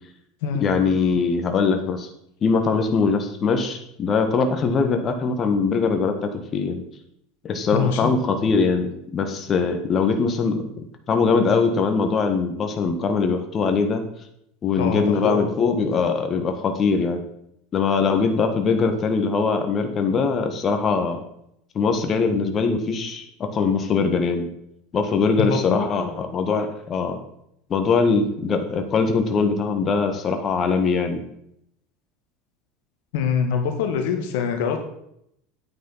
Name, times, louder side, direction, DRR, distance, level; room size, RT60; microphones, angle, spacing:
voice 1, 0.6-2.1 2.4-6.8 7.4-10.6 11.1-14.0 14.6-17.2 17.7-21.2 21.7-24.5 24.9-27.2 27.7-31.2, left 4 dB, 35° left, 6 dB, 1.6 m, -22 dB
voice 2, 7.7-8.1 14.8-15.4 25.4-25.9 33.1-34.8, left 6 dB, 65° left, 5 dB, 1.6 m, -24 dB
9.6 x 9.2 x 4.1 m, 0.74 s
hypercardioid pair, 75°, 0 cm